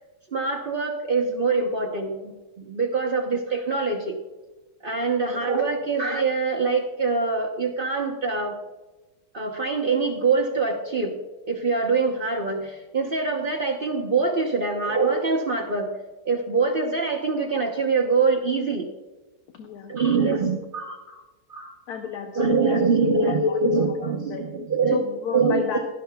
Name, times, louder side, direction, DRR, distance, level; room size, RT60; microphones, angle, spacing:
voice 1, 0.3-4.2 4.8-8.6 9.3-11.2 11.5-15.9 16.2-18.9 19.9-21.2 21.5-21.7 22.3-25.0 25.3-25.8, right 4 dB, 45° right, 0 dB, 0.8 m, -24 dB
voice 2, 19.6-19.9 21.1-21.2 21.9-22.8 23.2-24.4 24.9-25.8, left 6 dB, 65° left, 4 dB, 1.3 m, -32 dB
16.5 x 12.5 x 2.3 m, 1.2 s
omnidirectional pair, 1.9 m